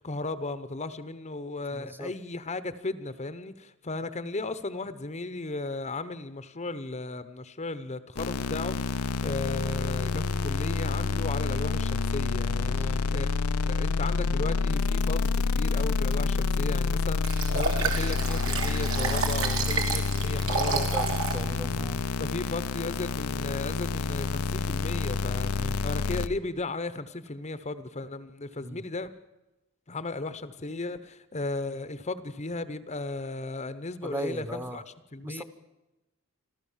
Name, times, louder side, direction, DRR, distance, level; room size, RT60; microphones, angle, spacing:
voice 1, 0.0-13.3 13.6-21.2 21.5-21.8 22.2-29.1 29.9-34.8 35.1-35.4, left 2 dB, 30° left, 0.9 m, -35 dB
voice 2, 1.7-2.1 12.7-13.0 20.4-22.1 25.5-25.8 28.6-28.8 34.0-34.8 35.2-35.4, equal, 10° right, 1.0 m, -38 dB
sound 1, 8.2-26.3, left 4 dB, 85° left, 0.7 m, -28 dB
Liquid, 17.2-21.4 21.9-22.0, right 5 dB, 70° right, 3.2 m, -30 dB
26.5 x 14.5 x 7.3 m
head